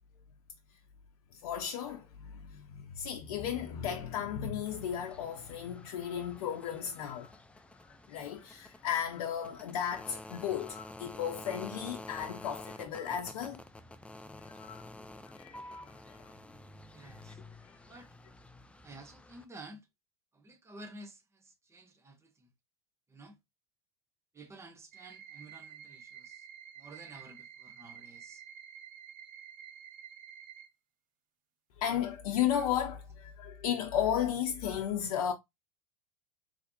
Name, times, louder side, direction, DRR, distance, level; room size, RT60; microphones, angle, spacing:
voice 1, 1.3-7.3 7.8-13.6 14.4-14.9 15.2-16.3 17.0-17.1 17.6-17.8 31.8-35.3, left 9 dB, 65° left, 0.8 m, -35 dB
sound 1, 4.7-19.4, left 1 dB, 5° left, 0.5 m, -50 dB
voice 2, 16.3-17.4 17.9-18.1 18.8-19.9 20.3-22.5 23.1-23.4 24.3-26.5 26.8-28.4, right 2 dB, 15° right, 1.1 m, -52 dB
sound 2, 24.9-30.7, right 8 dB, 45° right, 0.8 m, -50 dB
4.0 x 3.1 x 2.7 m
hypercardioid pair, 90°, 19 cm